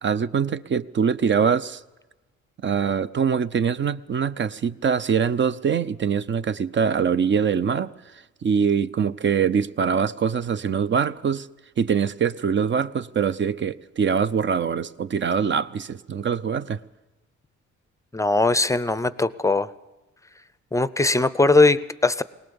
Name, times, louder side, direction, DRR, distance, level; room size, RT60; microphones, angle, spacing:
voice 1, 0.0-1.8 2.6-7.9 8.4-11.5 11.8-16.8, right 7 dB, 40° right, 0.7 m, -23 dB
voice 2, 18.1-19.7 20.7-22.2, left 3 dB, 10° left, 0.6 m, -20 dB
21.0 x 19.0 x 7.0 m
cardioid pair, 90°, 30 cm